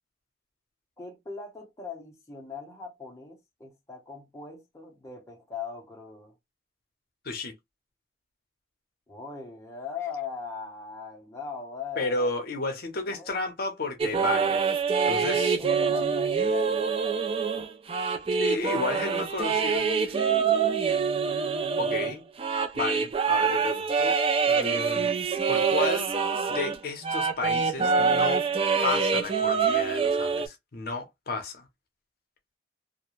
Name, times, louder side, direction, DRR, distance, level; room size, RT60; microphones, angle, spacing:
voice 1, 1.0-6.3 9.1-12.3 13.1-13.3 15.6-17.3 17.5-17.7 20.5-21.4, left 5 dB, 15° left, 0.7 m, -40 dB
voice 2, 12.0-14.8 15.1-15.6 18.4-20.2 21.8-22.2 22.7-24.2 24.5-25.1 25.5-26.1 26.5-28.4 28.8-31.7, left 3 dB, 55° left, 0.6 m, -32 dB
sound 1, 14.0-26.8 27.0-30.5, right 5 dB, 30° right, 0.3 m, -25 dB
2.4 x 2.1 x 3.0 m
head